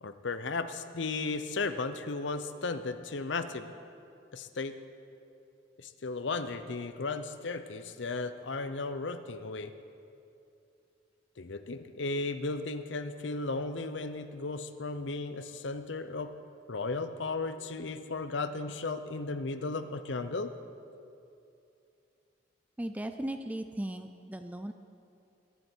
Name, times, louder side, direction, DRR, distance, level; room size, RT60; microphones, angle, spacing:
voice 1, 0.0-3.7 4.3-4.7 5.8-9.7 11.4-16.3 16.7-20.5, left 3 dB, 80° left, 10 dB, 0.7 m, -35 dB
voice 2, 22.8-24.7, right 1 dB, 10° right, 8 dB, 0.4 m, -37 dB
21.0 x 11.5 x 4.5 m, 2.6 s
head